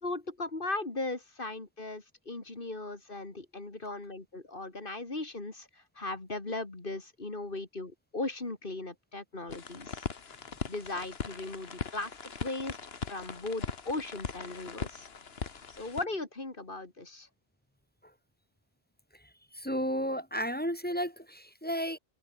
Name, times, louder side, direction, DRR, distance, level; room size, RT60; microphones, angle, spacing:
voice 1, 0.0-5.7 6.0-10.0 10.7-12.8 13.1-15.1 15.8-17.3, left 2 dB, 55° left, 3.2 m, -38 dB
sound 1, 9.5-16.0, left 5 dB, 75° left, 1.6 m, -40 dB
voice 2, 19.6-22.0, equal, 10° left, 3.5 m, -33 dB
omnidirectional pair, 1.1 m